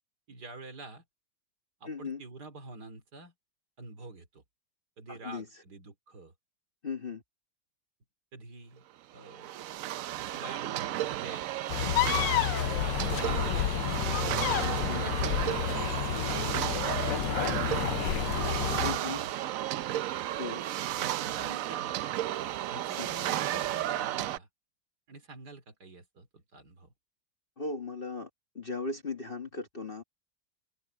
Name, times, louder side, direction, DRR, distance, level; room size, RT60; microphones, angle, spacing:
voice 1, 0.3-1.0 1.8-3.3 3.8-4.4 5.0-6.3 8.3-8.9 9.1-9.5 10.2-11.5 12.8-14.1 14.9-16.0 17.1-18.3 18.6-19.7 21.0-22.0 22.7-24.5 25.1-26.9, right 3 dB, 60° right, 3.4 m, -47 dB
voice 2, 1.9-2.2 5.1-5.5 6.8-7.2 14.6-15.0 18.8-19.2 20.4-20.6 22.7-23.1 27.6-28.3 28.5-30.0, left 4 dB, 30° left, 1.6 m, -37 dB
sound 1, 9.2-24.4, right 13 dB, 85° right, 0.7 m, -33 dB
sound 2, 11.7-19.0, left 13 dB, 80° left, 1.3 m, -30 dB
omnidirectional pair, 2.0 m